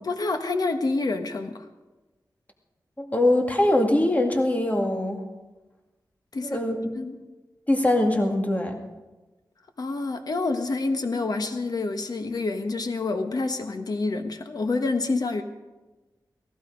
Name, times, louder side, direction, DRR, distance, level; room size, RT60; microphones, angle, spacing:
voice 1, 0.0-1.6 6.3-6.6 7.0-7.2 9.8-15.4, left 3 dB, 60° left, 7 dB, 1.4 m, -27 dB
voice 2, 3.0-5.2 6.4-6.8 7.7-8.8, left 1 dB, 20° left, 3 dB, 2.1 m, -22 dB
17.5 x 15.5 x 5.2 m, 1.1 s
wide cardioid pair, 115°, 7 cm